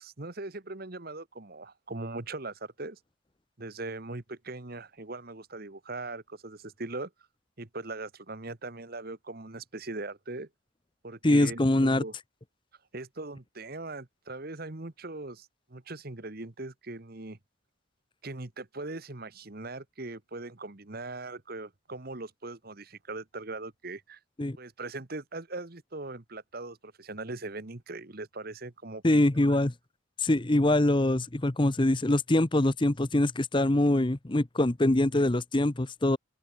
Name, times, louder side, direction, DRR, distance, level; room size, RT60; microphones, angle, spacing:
voice 1, 0.0-3.0 3.6-7.1 7.6-10.5 11.0-12.1 12.9-17.4 18.2-24.2 24.6-29.6, right 2 dB, 45° right, 1.4 m, -40 dB
voice 2, 11.2-12.0 24.4-24.6 29.0-29.7 30.2-36.2, left 1 dB, 25° left, 0.8 m, -24 dB
open air
head